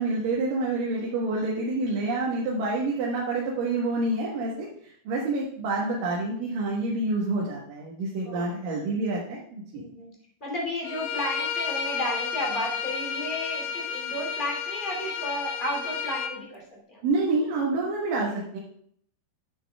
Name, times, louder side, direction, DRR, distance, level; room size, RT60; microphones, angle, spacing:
voice 1, 0.0-9.8 17.0-18.6, right 2 dB, 60° right, -5 dB, 2.9 m, -28 dB
voice 2, 8.2-8.8 9.7-10.1 10.4-16.6 16.9-17.1, left 1 dB, 15° left, -2 dB, 2.2 m, -33 dB
Bowed string instrument, 10.8-16.3, left 6 dB, 80° left, 1.7 m, -32 dB
10.5 x 8.4 x 3.5 m, 0.64 s
omnidirectional pair, 4.8 m